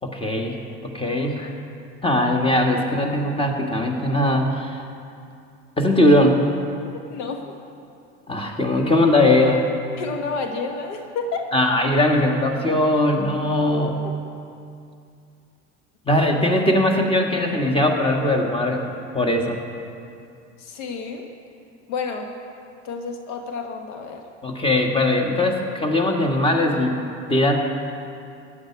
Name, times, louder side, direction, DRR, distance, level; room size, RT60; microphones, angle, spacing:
voice 1, 0.0-0.5 0.8-1.5 2.0-4.8 5.8-6.4 8.3-9.6 11.5-14.0 16.1-18.8 19.1-19.6 24.4-26.9 27.3-27.6, left 1 dB, 15° left, 2 dB, 1.8 m, -20 dB
voice 2, 6.9-7.5 10.0-11.4 20.6-21.3 21.9-22.3 22.8-24.2, left 4 dB, 75° left, 4 dB, 1.2 m, -30 dB
15.5 x 10.0 x 4.7 m, 2.5 s
hypercardioid pair, 75°, 36 cm